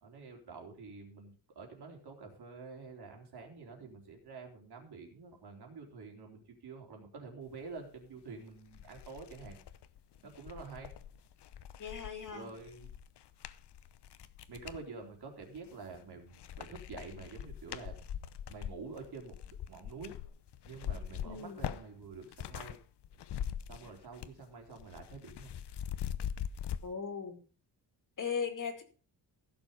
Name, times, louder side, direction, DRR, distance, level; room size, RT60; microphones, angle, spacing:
voice 1, 0.0-9.6 10.2-10.9 12.3-12.9 14.5-18.0 18.5-20.1 20.7-22.8 23.7-25.5, right 4 dB, 60° right, 2 dB, 3.9 m, -48 dB
sound 1, 8.2-8.3 8.7-14.8 15.4-16.0 16.3-22.8 23.0-24.4 24.7-26.8, left 9 dB, 65° left, 0.9 m, -42 dB
voice 2, 11.8-12.5 21.2-21.7 26.8-27.4 28.2-28.8, left 6 dB, 45° left, 6 dB, 2.4 m, -38 dB
16.0 x 7.2 x 5.2 m, 0.37 s
wide cardioid pair, 155°, 43 cm